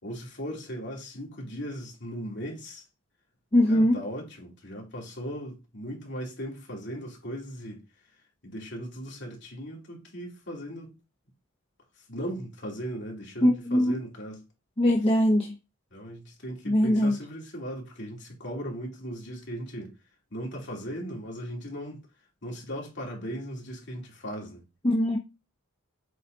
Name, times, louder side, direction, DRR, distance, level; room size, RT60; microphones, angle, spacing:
voice 1, 0.0-2.8 3.7-7.8 8.4-10.9 12.1-14.4 15.9-19.9 20.3-22.0 22.4-24.6, equal, 50° left, 2.7 m, -38 dB
voice 2, 3.5-4.0 13.4-13.9 14.8-15.5 16.7-17.1 24.8-25.2, left 1 dB, 25° left, 0.8 m, -21 dB
7.9 x 4.2 x 3.9 m
head